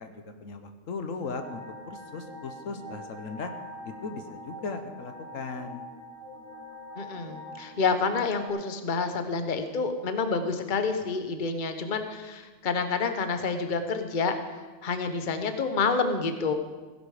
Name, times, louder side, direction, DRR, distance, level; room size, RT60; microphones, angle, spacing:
voice 1, 0.0-1.6 1.9-3.5 3.8-5.9, left 4 dB, 80° left, 8 dB, 1.4 m, -37 dB
sound 1, 1.2-8.5, equal, 85° right, 2.9 m, -44 dB
voice 2, 7.0-14.3 14.8-16.5, left 4 dB, 40° left, 8 dB, 1.1 m, -28 dB
16.5 x 11.0 x 4.9 m, 1.3 s
omnidirectional pair, 1.4 m